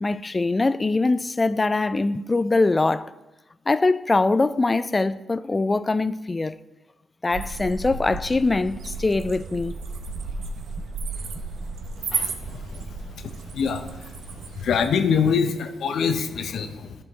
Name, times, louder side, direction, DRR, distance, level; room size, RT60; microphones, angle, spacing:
voice 1, 0.0-3.1 3.7-6.6 7.2-9.8, left 3 dB, 30° left, 0.3 m, -23 dB
sound 1, 7.3-14.9, right 4 dB, 70° right, 0.7 m, -33 dB
voice 2, 12.1-12.8 13.5-13.9 14.6-16.9, left 6 dB, 70° left, 0.6 m, -24 dB
11.5 x 4.4 x 3.5 m
supercardioid pair, 50°, 0 cm